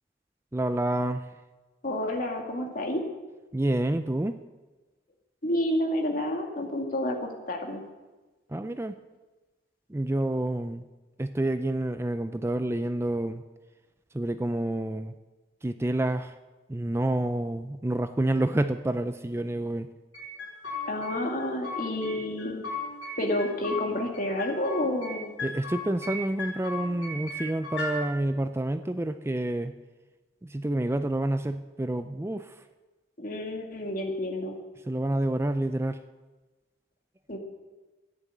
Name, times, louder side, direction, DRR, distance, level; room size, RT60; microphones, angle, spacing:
voice 1, 0.5-1.2 3.5-4.4 8.5-8.9 9.9-10.8 11.2-13.4 14.1-15.1 15.6-16.3 16.7-19.9 25.4-29.7 30.4-32.5 34.9-36.0, right 1 dB, 15° right, 10 dB, 0.4 m, -28 dB
voice 2, 1.8-3.0 5.4-7.8 20.9-22.6 23.2-25.3 33.2-34.6 37.3-37.4, left 1 dB, 50° left, 2 dB, 2.2 m, -29 dB
sound 1, 20.1-21.1 21.4-22.1 22.4-23.8 24.1-25.1 25.4-26.1 26.4-27.9, left 3 dB, 85° left, 4.5 m, -36 dB
13.5 x 10.0 x 7.9 m, 1.2 s
head